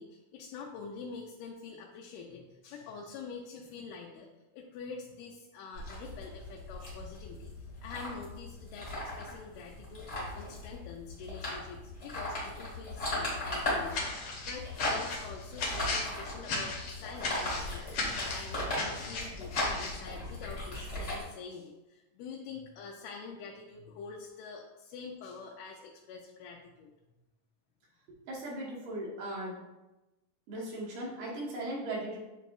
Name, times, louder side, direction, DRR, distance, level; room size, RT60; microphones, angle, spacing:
voice 1, 0.0-26.9, left 5 dB, 90° left, -1 dB, 2.1 m, -46 dB
sound 1, 5.7-21.2, left 1 dB, 45° left, 0.9 m, -38 dB
sound 2, 13.9-20.0, left 3 dB, 70° left, 1.4 m, -36 dB
voice 2, 28.3-29.6 30.5-32.2, right 1 dB, 85° right, -5 dB, 2.8 m, -38 dB
7.9 x 2.6 x 2.4 m, 1.0 s
omnidirectional pair, 3.6 m